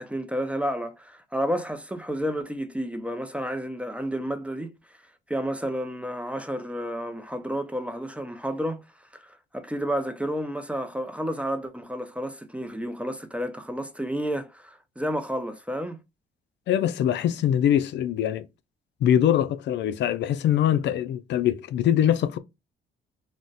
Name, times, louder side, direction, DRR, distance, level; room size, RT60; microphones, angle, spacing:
voice 1, 0.0-4.7 5.3-8.8 9.1-16.0, equal, 5° right, 0.4 m, -31 dB
voice 2, 16.7-18.5 19.0-22.4, left 10 dB, 65° left, 0.4 m, -23 dB
2.4 x 2.1 x 3.9 m
cardioid pair, 90°, 20 cm